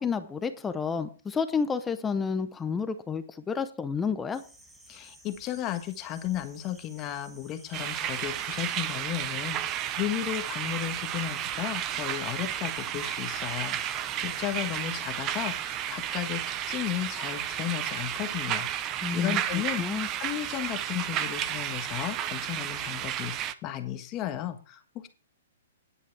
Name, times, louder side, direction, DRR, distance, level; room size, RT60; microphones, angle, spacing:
voice 1, 0.0-4.4 19.0-20.1, left 5 dB, 10° left, 10 dB, 0.7 m, -30 dB
sound 1, 4.3-14.8, right 1 dB, 5° right, 1.6 m, -54 dB
voice 2, 4.9-16.4 16.7-19.8 20.2-25.1, left 12 dB, 25° left, 8 dB, 1.4 m, -34 dB
sound 2, 7.7-23.5, right 11 dB, 25° right, 0.7 m, -32 dB
10.5 x 8.2 x 4.7 m, 0.36 s
hypercardioid pair, 150°, 0 cm